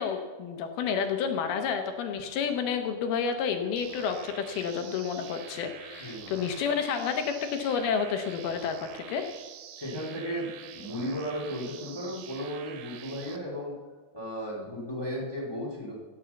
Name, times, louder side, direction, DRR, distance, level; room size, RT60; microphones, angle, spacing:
voice 1, 0.0-9.2, left 6 dB, 75° left, 6 dB, 2.7 m, -30 dB
sound 1, 3.8-13.4, right 9 dB, 80° right, 2.8 m, -46 dB
voice 2, 6.0-6.4 9.7-13.8 14.1-15.9, equal, 5° left, -3 dB, 2.1 m, -35 dB
16.5 x 6.3 x 7.1 m, 1.4 s
omnidirectional pair, 4.7 m